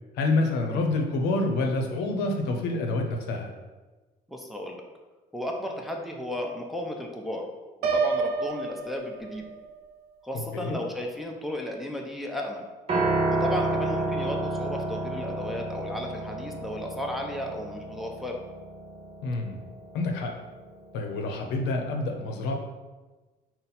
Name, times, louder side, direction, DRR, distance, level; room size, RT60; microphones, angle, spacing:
voice 1, 0.2-3.5 10.3-10.8 19.2-19.6 19.9-20.3 20.9-22.5, left 2 dB, 85° left, 2 dB, 0.6 m, -27 dB
voice 2, 4.3-4.8 5.3-7.4 7.8-9.5 10.2-12.7 13.3-18.4, left 1 dB, ahead, 0 dB, 0.5 m, -34 dB
Piano, 7.8-9.7, right 4 dB, 65° right, 0.5 m, -28 dB
Piano 2, 12.9-21.1, right 2 dB, 35° right, 0.8 m, -31 dB
4.0 x 2.1 x 4.0 m, 1.2 s
cardioid pair, 110°, 17 cm